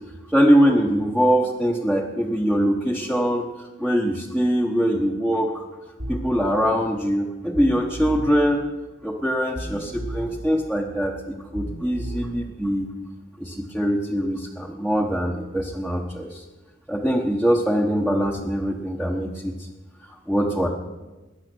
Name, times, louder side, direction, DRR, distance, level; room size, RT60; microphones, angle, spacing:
voice 1, 0.3-3.4 3.8-5.6 6.1-8.7 9.0-12.9 13.4-16.4 16.9-19.5 20.0-20.7, equal, 5° right, -3 dB, 1.1 m, -22 dB
sound 1, 6.0-6.4 7.6-8.4 9.6-10.4 11.6-12.4, right 1 dB, 70° right, 4.6 m, -33 dB
20.5 x 9.8 x 6.2 m, 1.2 s
head